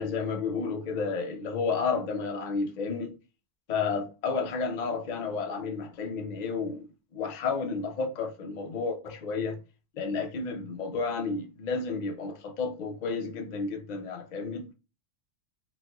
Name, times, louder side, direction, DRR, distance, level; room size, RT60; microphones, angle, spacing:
voice 1, 0.0-3.1 3.7-9.6 9.9-14.7, left 4 dB, 60° left, 0.4 m, -31 dB
4.0 x 2.5 x 2.2 m
omnidirectional pair, 1.3 m